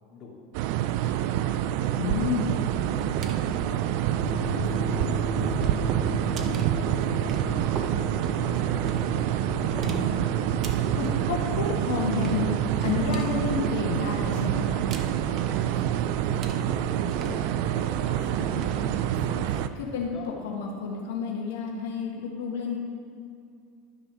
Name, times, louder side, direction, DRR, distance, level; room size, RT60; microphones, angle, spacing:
sound 1, 0.5-19.7, right 12 dB, 60° right, 0.4 m, -27 dB
voice 1, 0.9-1.9 2.3-3.2 4.4-5.2 5.5-9.4 15.7-19.3 19.9-20.3, left 4 dB, 30° left, -5 dB, 2.4 m, -47 dB
voice 2, 1.9-2.6 9.8-10.3 10.9-14.9 19.1-20.1 20.4-22.8, left 5 dB, 85° left, -1 dB, 1.3 m, -30 dB
sound 2, 2.8-18.9, right 4 dB, 35° right, 0.8 m, -37 dB
sound 3, 4.0-19.9, left 2 dB, 80° right, 2.2 m, -38 dB
11.5 x 4.9 x 6.0 m, 2.4 s
supercardioid pair, 145°, 0 cm